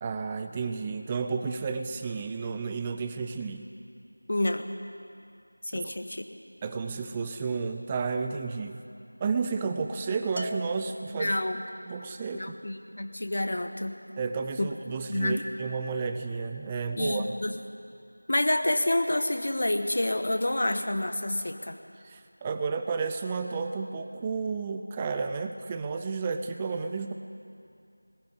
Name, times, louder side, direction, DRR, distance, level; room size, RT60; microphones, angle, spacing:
voice 1, 0.0-3.7 5.7-5.9 6.6-8.8 9.2-11.3 11.9-12.5 14.2-17.3 22.0-27.1, right 5 dB, 10° right, 7 dB, 0.5 m, -32 dB
voice 2, 4.3-4.7 5.7-6.2 11.1-11.6 12.3-13.9 14.6-14.7 15.1-15.4 17.0-17.5 18.3-21.7, left 1 dB, 40° left, 8 dB, 1.3 m, -28 dB
Bell, 10.4-11.7, equal, 80° right, 1.0 m, -40 dB
20.0 x 14.0 x 9.5 m, 2.5 s
figure-of-eight pair, 175°, 0 cm